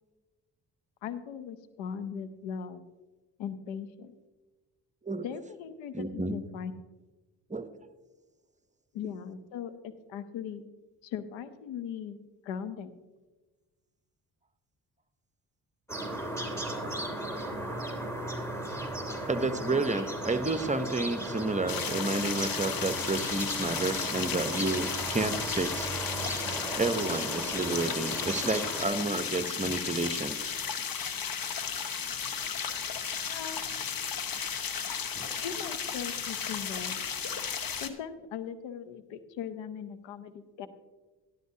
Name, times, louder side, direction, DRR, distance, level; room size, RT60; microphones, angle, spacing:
voice 1, 1.0-2.8 3.4-4.1 5.2-6.7 8.9-10.6 11.0-12.2 12.4-12.9 33.3-33.6 35.4-37.0 37.8-40.7, left 8 dB, 85° left, 12 dB, 0.7 m, -39 dB
voice 2, 5.9-6.4 7.5-7.7 19.3-25.9 26.8-30.4 35.1-35.4, right 2 dB, 15° right, 10 dB, 0.8 m, -30 dB
sound 1, 15.9-28.8, right 1 dB, 5° left, 2.7 m, -36 dB
sound 2, 21.7-37.9, left 7 dB, 50° left, 1.0 m, -34 dB
12.5 x 11.5 x 2.8 m, 1.2 s
supercardioid pair, 50°, 45 cm